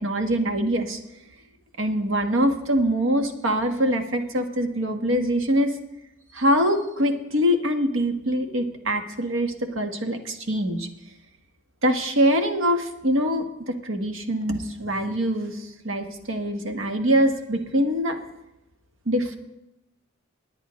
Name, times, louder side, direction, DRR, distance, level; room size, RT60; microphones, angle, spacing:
voice 1, 0.0-1.0 1.8-5.7 6.3-10.9 11.8-15.6 15.8-18.2 19.1-19.4, equal, 80° right, 5 dB, 1.3 m, -24 dB
18.0 x 9.9 x 3.1 m, 0.90 s
head